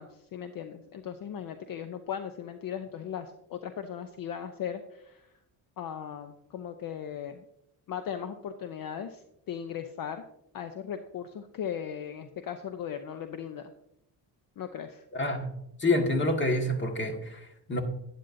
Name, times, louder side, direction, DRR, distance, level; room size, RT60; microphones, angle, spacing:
voice 1, 0.0-5.3 5.8-7.4 7.9-10.2 10.5-13.7 14.6-15.0, left 8 dB, 55° left, 8 dB, 0.7 m, -38 dB
voice 2, 15.8-17.8, left 1 dB, 25° left, 4 dB, 1.7 m, -27 dB
11.5 x 10.0 x 2.6 m, 0.81 s
cardioid pair, 115°, 41 cm